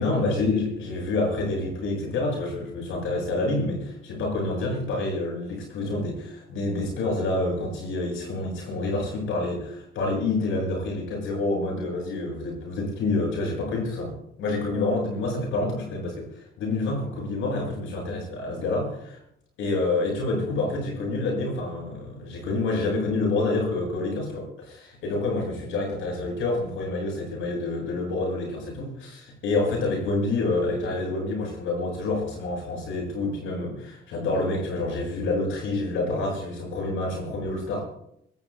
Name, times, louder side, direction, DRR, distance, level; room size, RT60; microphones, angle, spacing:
voice 1, 0.0-14.1 14.4-19.2 19.6-37.8, left 2 dB, 85° left, 0 dB, 7.7 m, -28 dB
23.0 x 17.0 x 2.4 m, 0.74 s
cardioid pair, 90°, 20 cm